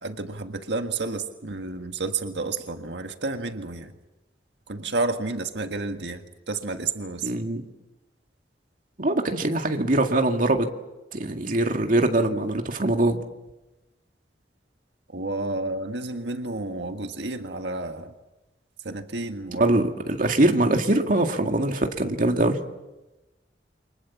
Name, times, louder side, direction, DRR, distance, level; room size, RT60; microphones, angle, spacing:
voice 1, 0.0-3.9 4.7-7.3 15.1-18.1 18.8-19.7, right 3 dB, 85° right, 6 dB, 1.7 m, -31 dB
voice 2, 7.2-7.6 9.0-10.7 11.1-13.2 19.6-22.6, right 1 dB, 50° right, 4 dB, 2.1 m, -22 dB
29.5 x 24.5 x 7.2 m, 1.0 s
head